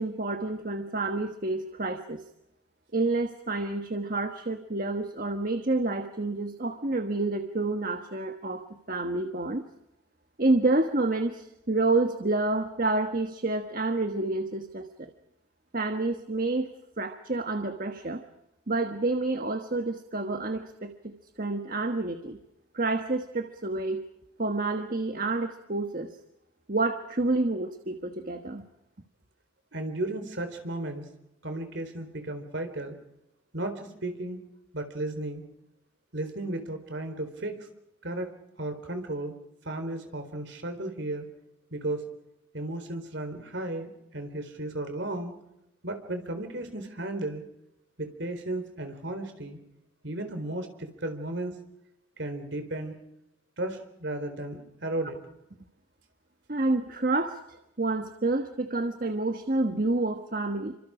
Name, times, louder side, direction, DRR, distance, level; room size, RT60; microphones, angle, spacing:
voice 1, 0.0-2.2 2.9-9.7 10.4-15.1 15.7-16.7 17.0-18.2 18.7-22.4 22.7-24.0 24.4-26.1 26.7-28.6 56.5-60.7, right 2 dB, 40° right, 6 dB, 1.3 m, -29 dB
voice 2, 29.7-31.0 31.4-32.9 33.5-34.4 34.7-35.4 36.1-37.6 38.0-38.3 38.6-39.3 39.6-41.2 41.7-42.1 42.5-45.3 45.8-47.4 48.0-49.6 50.0-51.6 52.2-52.9 53.6-55.2, right 1 dB, 55° right, 7 dB, 4.1 m, -34 dB
28.0 x 25.5 x 5.0 m, 0.87 s
head